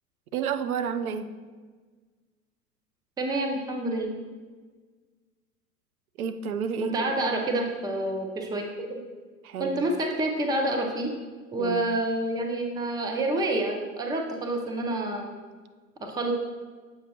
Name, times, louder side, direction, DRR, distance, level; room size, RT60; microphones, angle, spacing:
voice 1, 0.3-1.3 6.2-7.1 9.4-9.8 11.6-11.8, right 7 dB, 65° right, 9 dB, 0.7 m, -30 dB
voice 2, 3.2-4.1 6.8-8.6 8.9-9.0 9.6-11.1 11.5-15.3 16.0-16.3, right 1 dB, 10° right, 2 dB, 0.6 m, -28 dB
8.0 x 6.2 x 2.8 m, 1.4 s
figure-of-eight pair, 95°, 47 cm